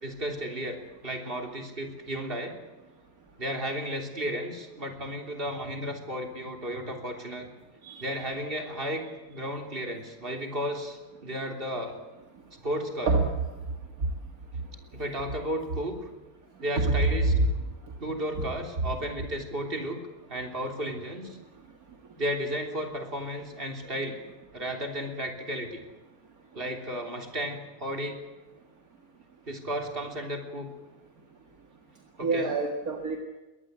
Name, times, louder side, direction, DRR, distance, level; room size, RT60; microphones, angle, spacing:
voice 1, 0.0-2.6 3.4-7.5 8.0-12.0 12.6-13.1 14.9-16.1 16.6-17.3 18.0-20.0 20.3-21.4 22.2-24.2 24.5-25.8 26.6-28.2 29.5-30.7 32.2-32.5, equal, 35° right, 3 dB, 3.5 m, -33 dB
voice 2, 7.8-8.2 13.1-13.3 16.8-17.0 17.3-17.4 18.4-18.5 32.2-33.2, right 3 dB, 65° right, 2 dB, 2.4 m, -26 dB
22.0 x 18.5 x 8.1 m, 1.2 s
omnidirectional pair, 1.6 m